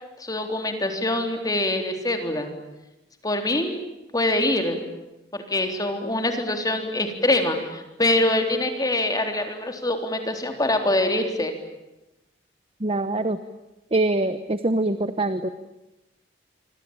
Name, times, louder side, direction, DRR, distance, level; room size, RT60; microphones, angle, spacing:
voice 1, 0.2-2.5 3.2-3.8 4.1-4.8 5.3-11.5, left 1 dB, 20° left, 5 dB, 3.6 m, -24 dB
voice 2, 12.8-13.4 13.9-15.5, right 2 dB, 30° right, 11 dB, 1.0 m, -24 dB
27.0 x 25.0 x 8.9 m, 0.98 s
head